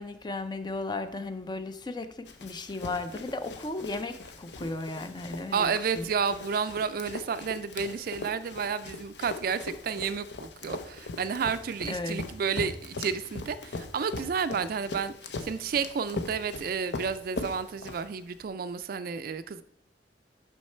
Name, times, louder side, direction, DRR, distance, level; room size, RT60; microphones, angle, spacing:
voice 1, 0.0-6.1 11.9-12.3, left 2 dB, 25° left, 0.4 m, -35 dB
Run, 2.3-18.4, left 3 dB, 70° left, 0.7 m, -40 dB
voice 2, 5.5-15.1 15.4-19.6, right 6 dB, 55° right, 0.3 m, -31 dB
6.3 x 5.7 x 4.3 m
head